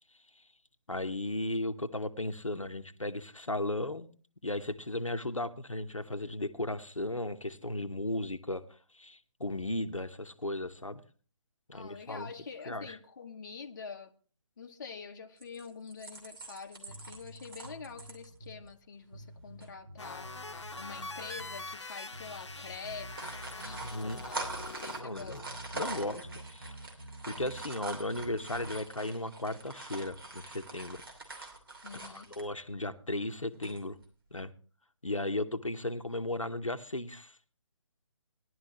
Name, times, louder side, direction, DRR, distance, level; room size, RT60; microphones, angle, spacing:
voice 1, 0.9-4.1 4.4-8.7 8.9-11.0 11.7-12.3 12.7-13.0 23.8-24.2 25.0-26.3 26.5-26.8 27.2-31.0 31.4-31.5 31.9-34.0 34.3-34.5 35.0-37.4, left 1 dB, 85° left, 8 dB, 1.0 m, -36 dB
voice 2, 11.7-14.1 14.6-20.3 20.8-25.7 26.0-26.2 31.8-32.3, left 5 dB, 40° left, 4 dB, 1.0 m, -46 dB
sound 1, 15.4-18.3 18.7-18.8 19.1-19.3 19.6-19.7 20.6-21.0 21.6-21.7 22.0-22.2 22.9-32.5 33.5-34.0, right 3 dB, 45° right, 2.8 m, -44 dB
sound 2, 16.9-18.7 19.1-21.7 22.1-24.7 25.1-27.7 28.1-28.8, right 1 dB, 75° right, 5.4 m, -48 dB
sound 3, 20.0-25.0, left 3 dB, 65° left, 1.0 m, -44 dB
17.0 x 11.0 x 2.9 m, 0.40 s
figure-of-eight pair, 145°, 16 cm